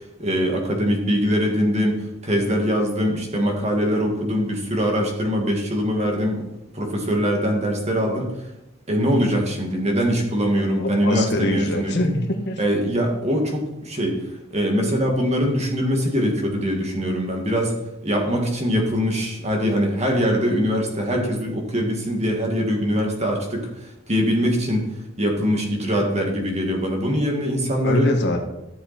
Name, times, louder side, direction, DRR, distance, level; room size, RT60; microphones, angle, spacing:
voice 1, 0.2-6.5 6.7-8.3 8.9-12.0 12.6-14.2 14.5-17.7 18.0-23.7 24.1-24.8 25.2-28.1, equal, 35° right, 1 dB, 2.3 m, -22 dB
voice 2, 10.8-12.6 27.8-28.4, left 1 dB, 60° left, 4 dB, 1.5 m, -23 dB
13.5 x 7.3 x 4.4 m, 0.91 s
head